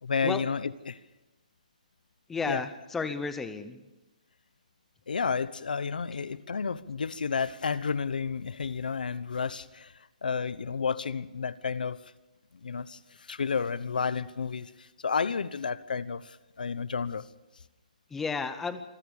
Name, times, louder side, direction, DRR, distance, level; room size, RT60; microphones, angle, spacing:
voice 1, 0.0-1.0 2.4-2.6 5.1-9.9 10.2-12.0 12.6-17.3, left 5 dB, 90° left, 1.0 m, -31 dB
voice 2, 2.3-3.8 6.1-6.2 18.1-18.8, left 4 dB, 5° left, 0.7 m, -33 dB
25.5 x 14.5 x 7.1 m
hypercardioid pair, 175°, 5 cm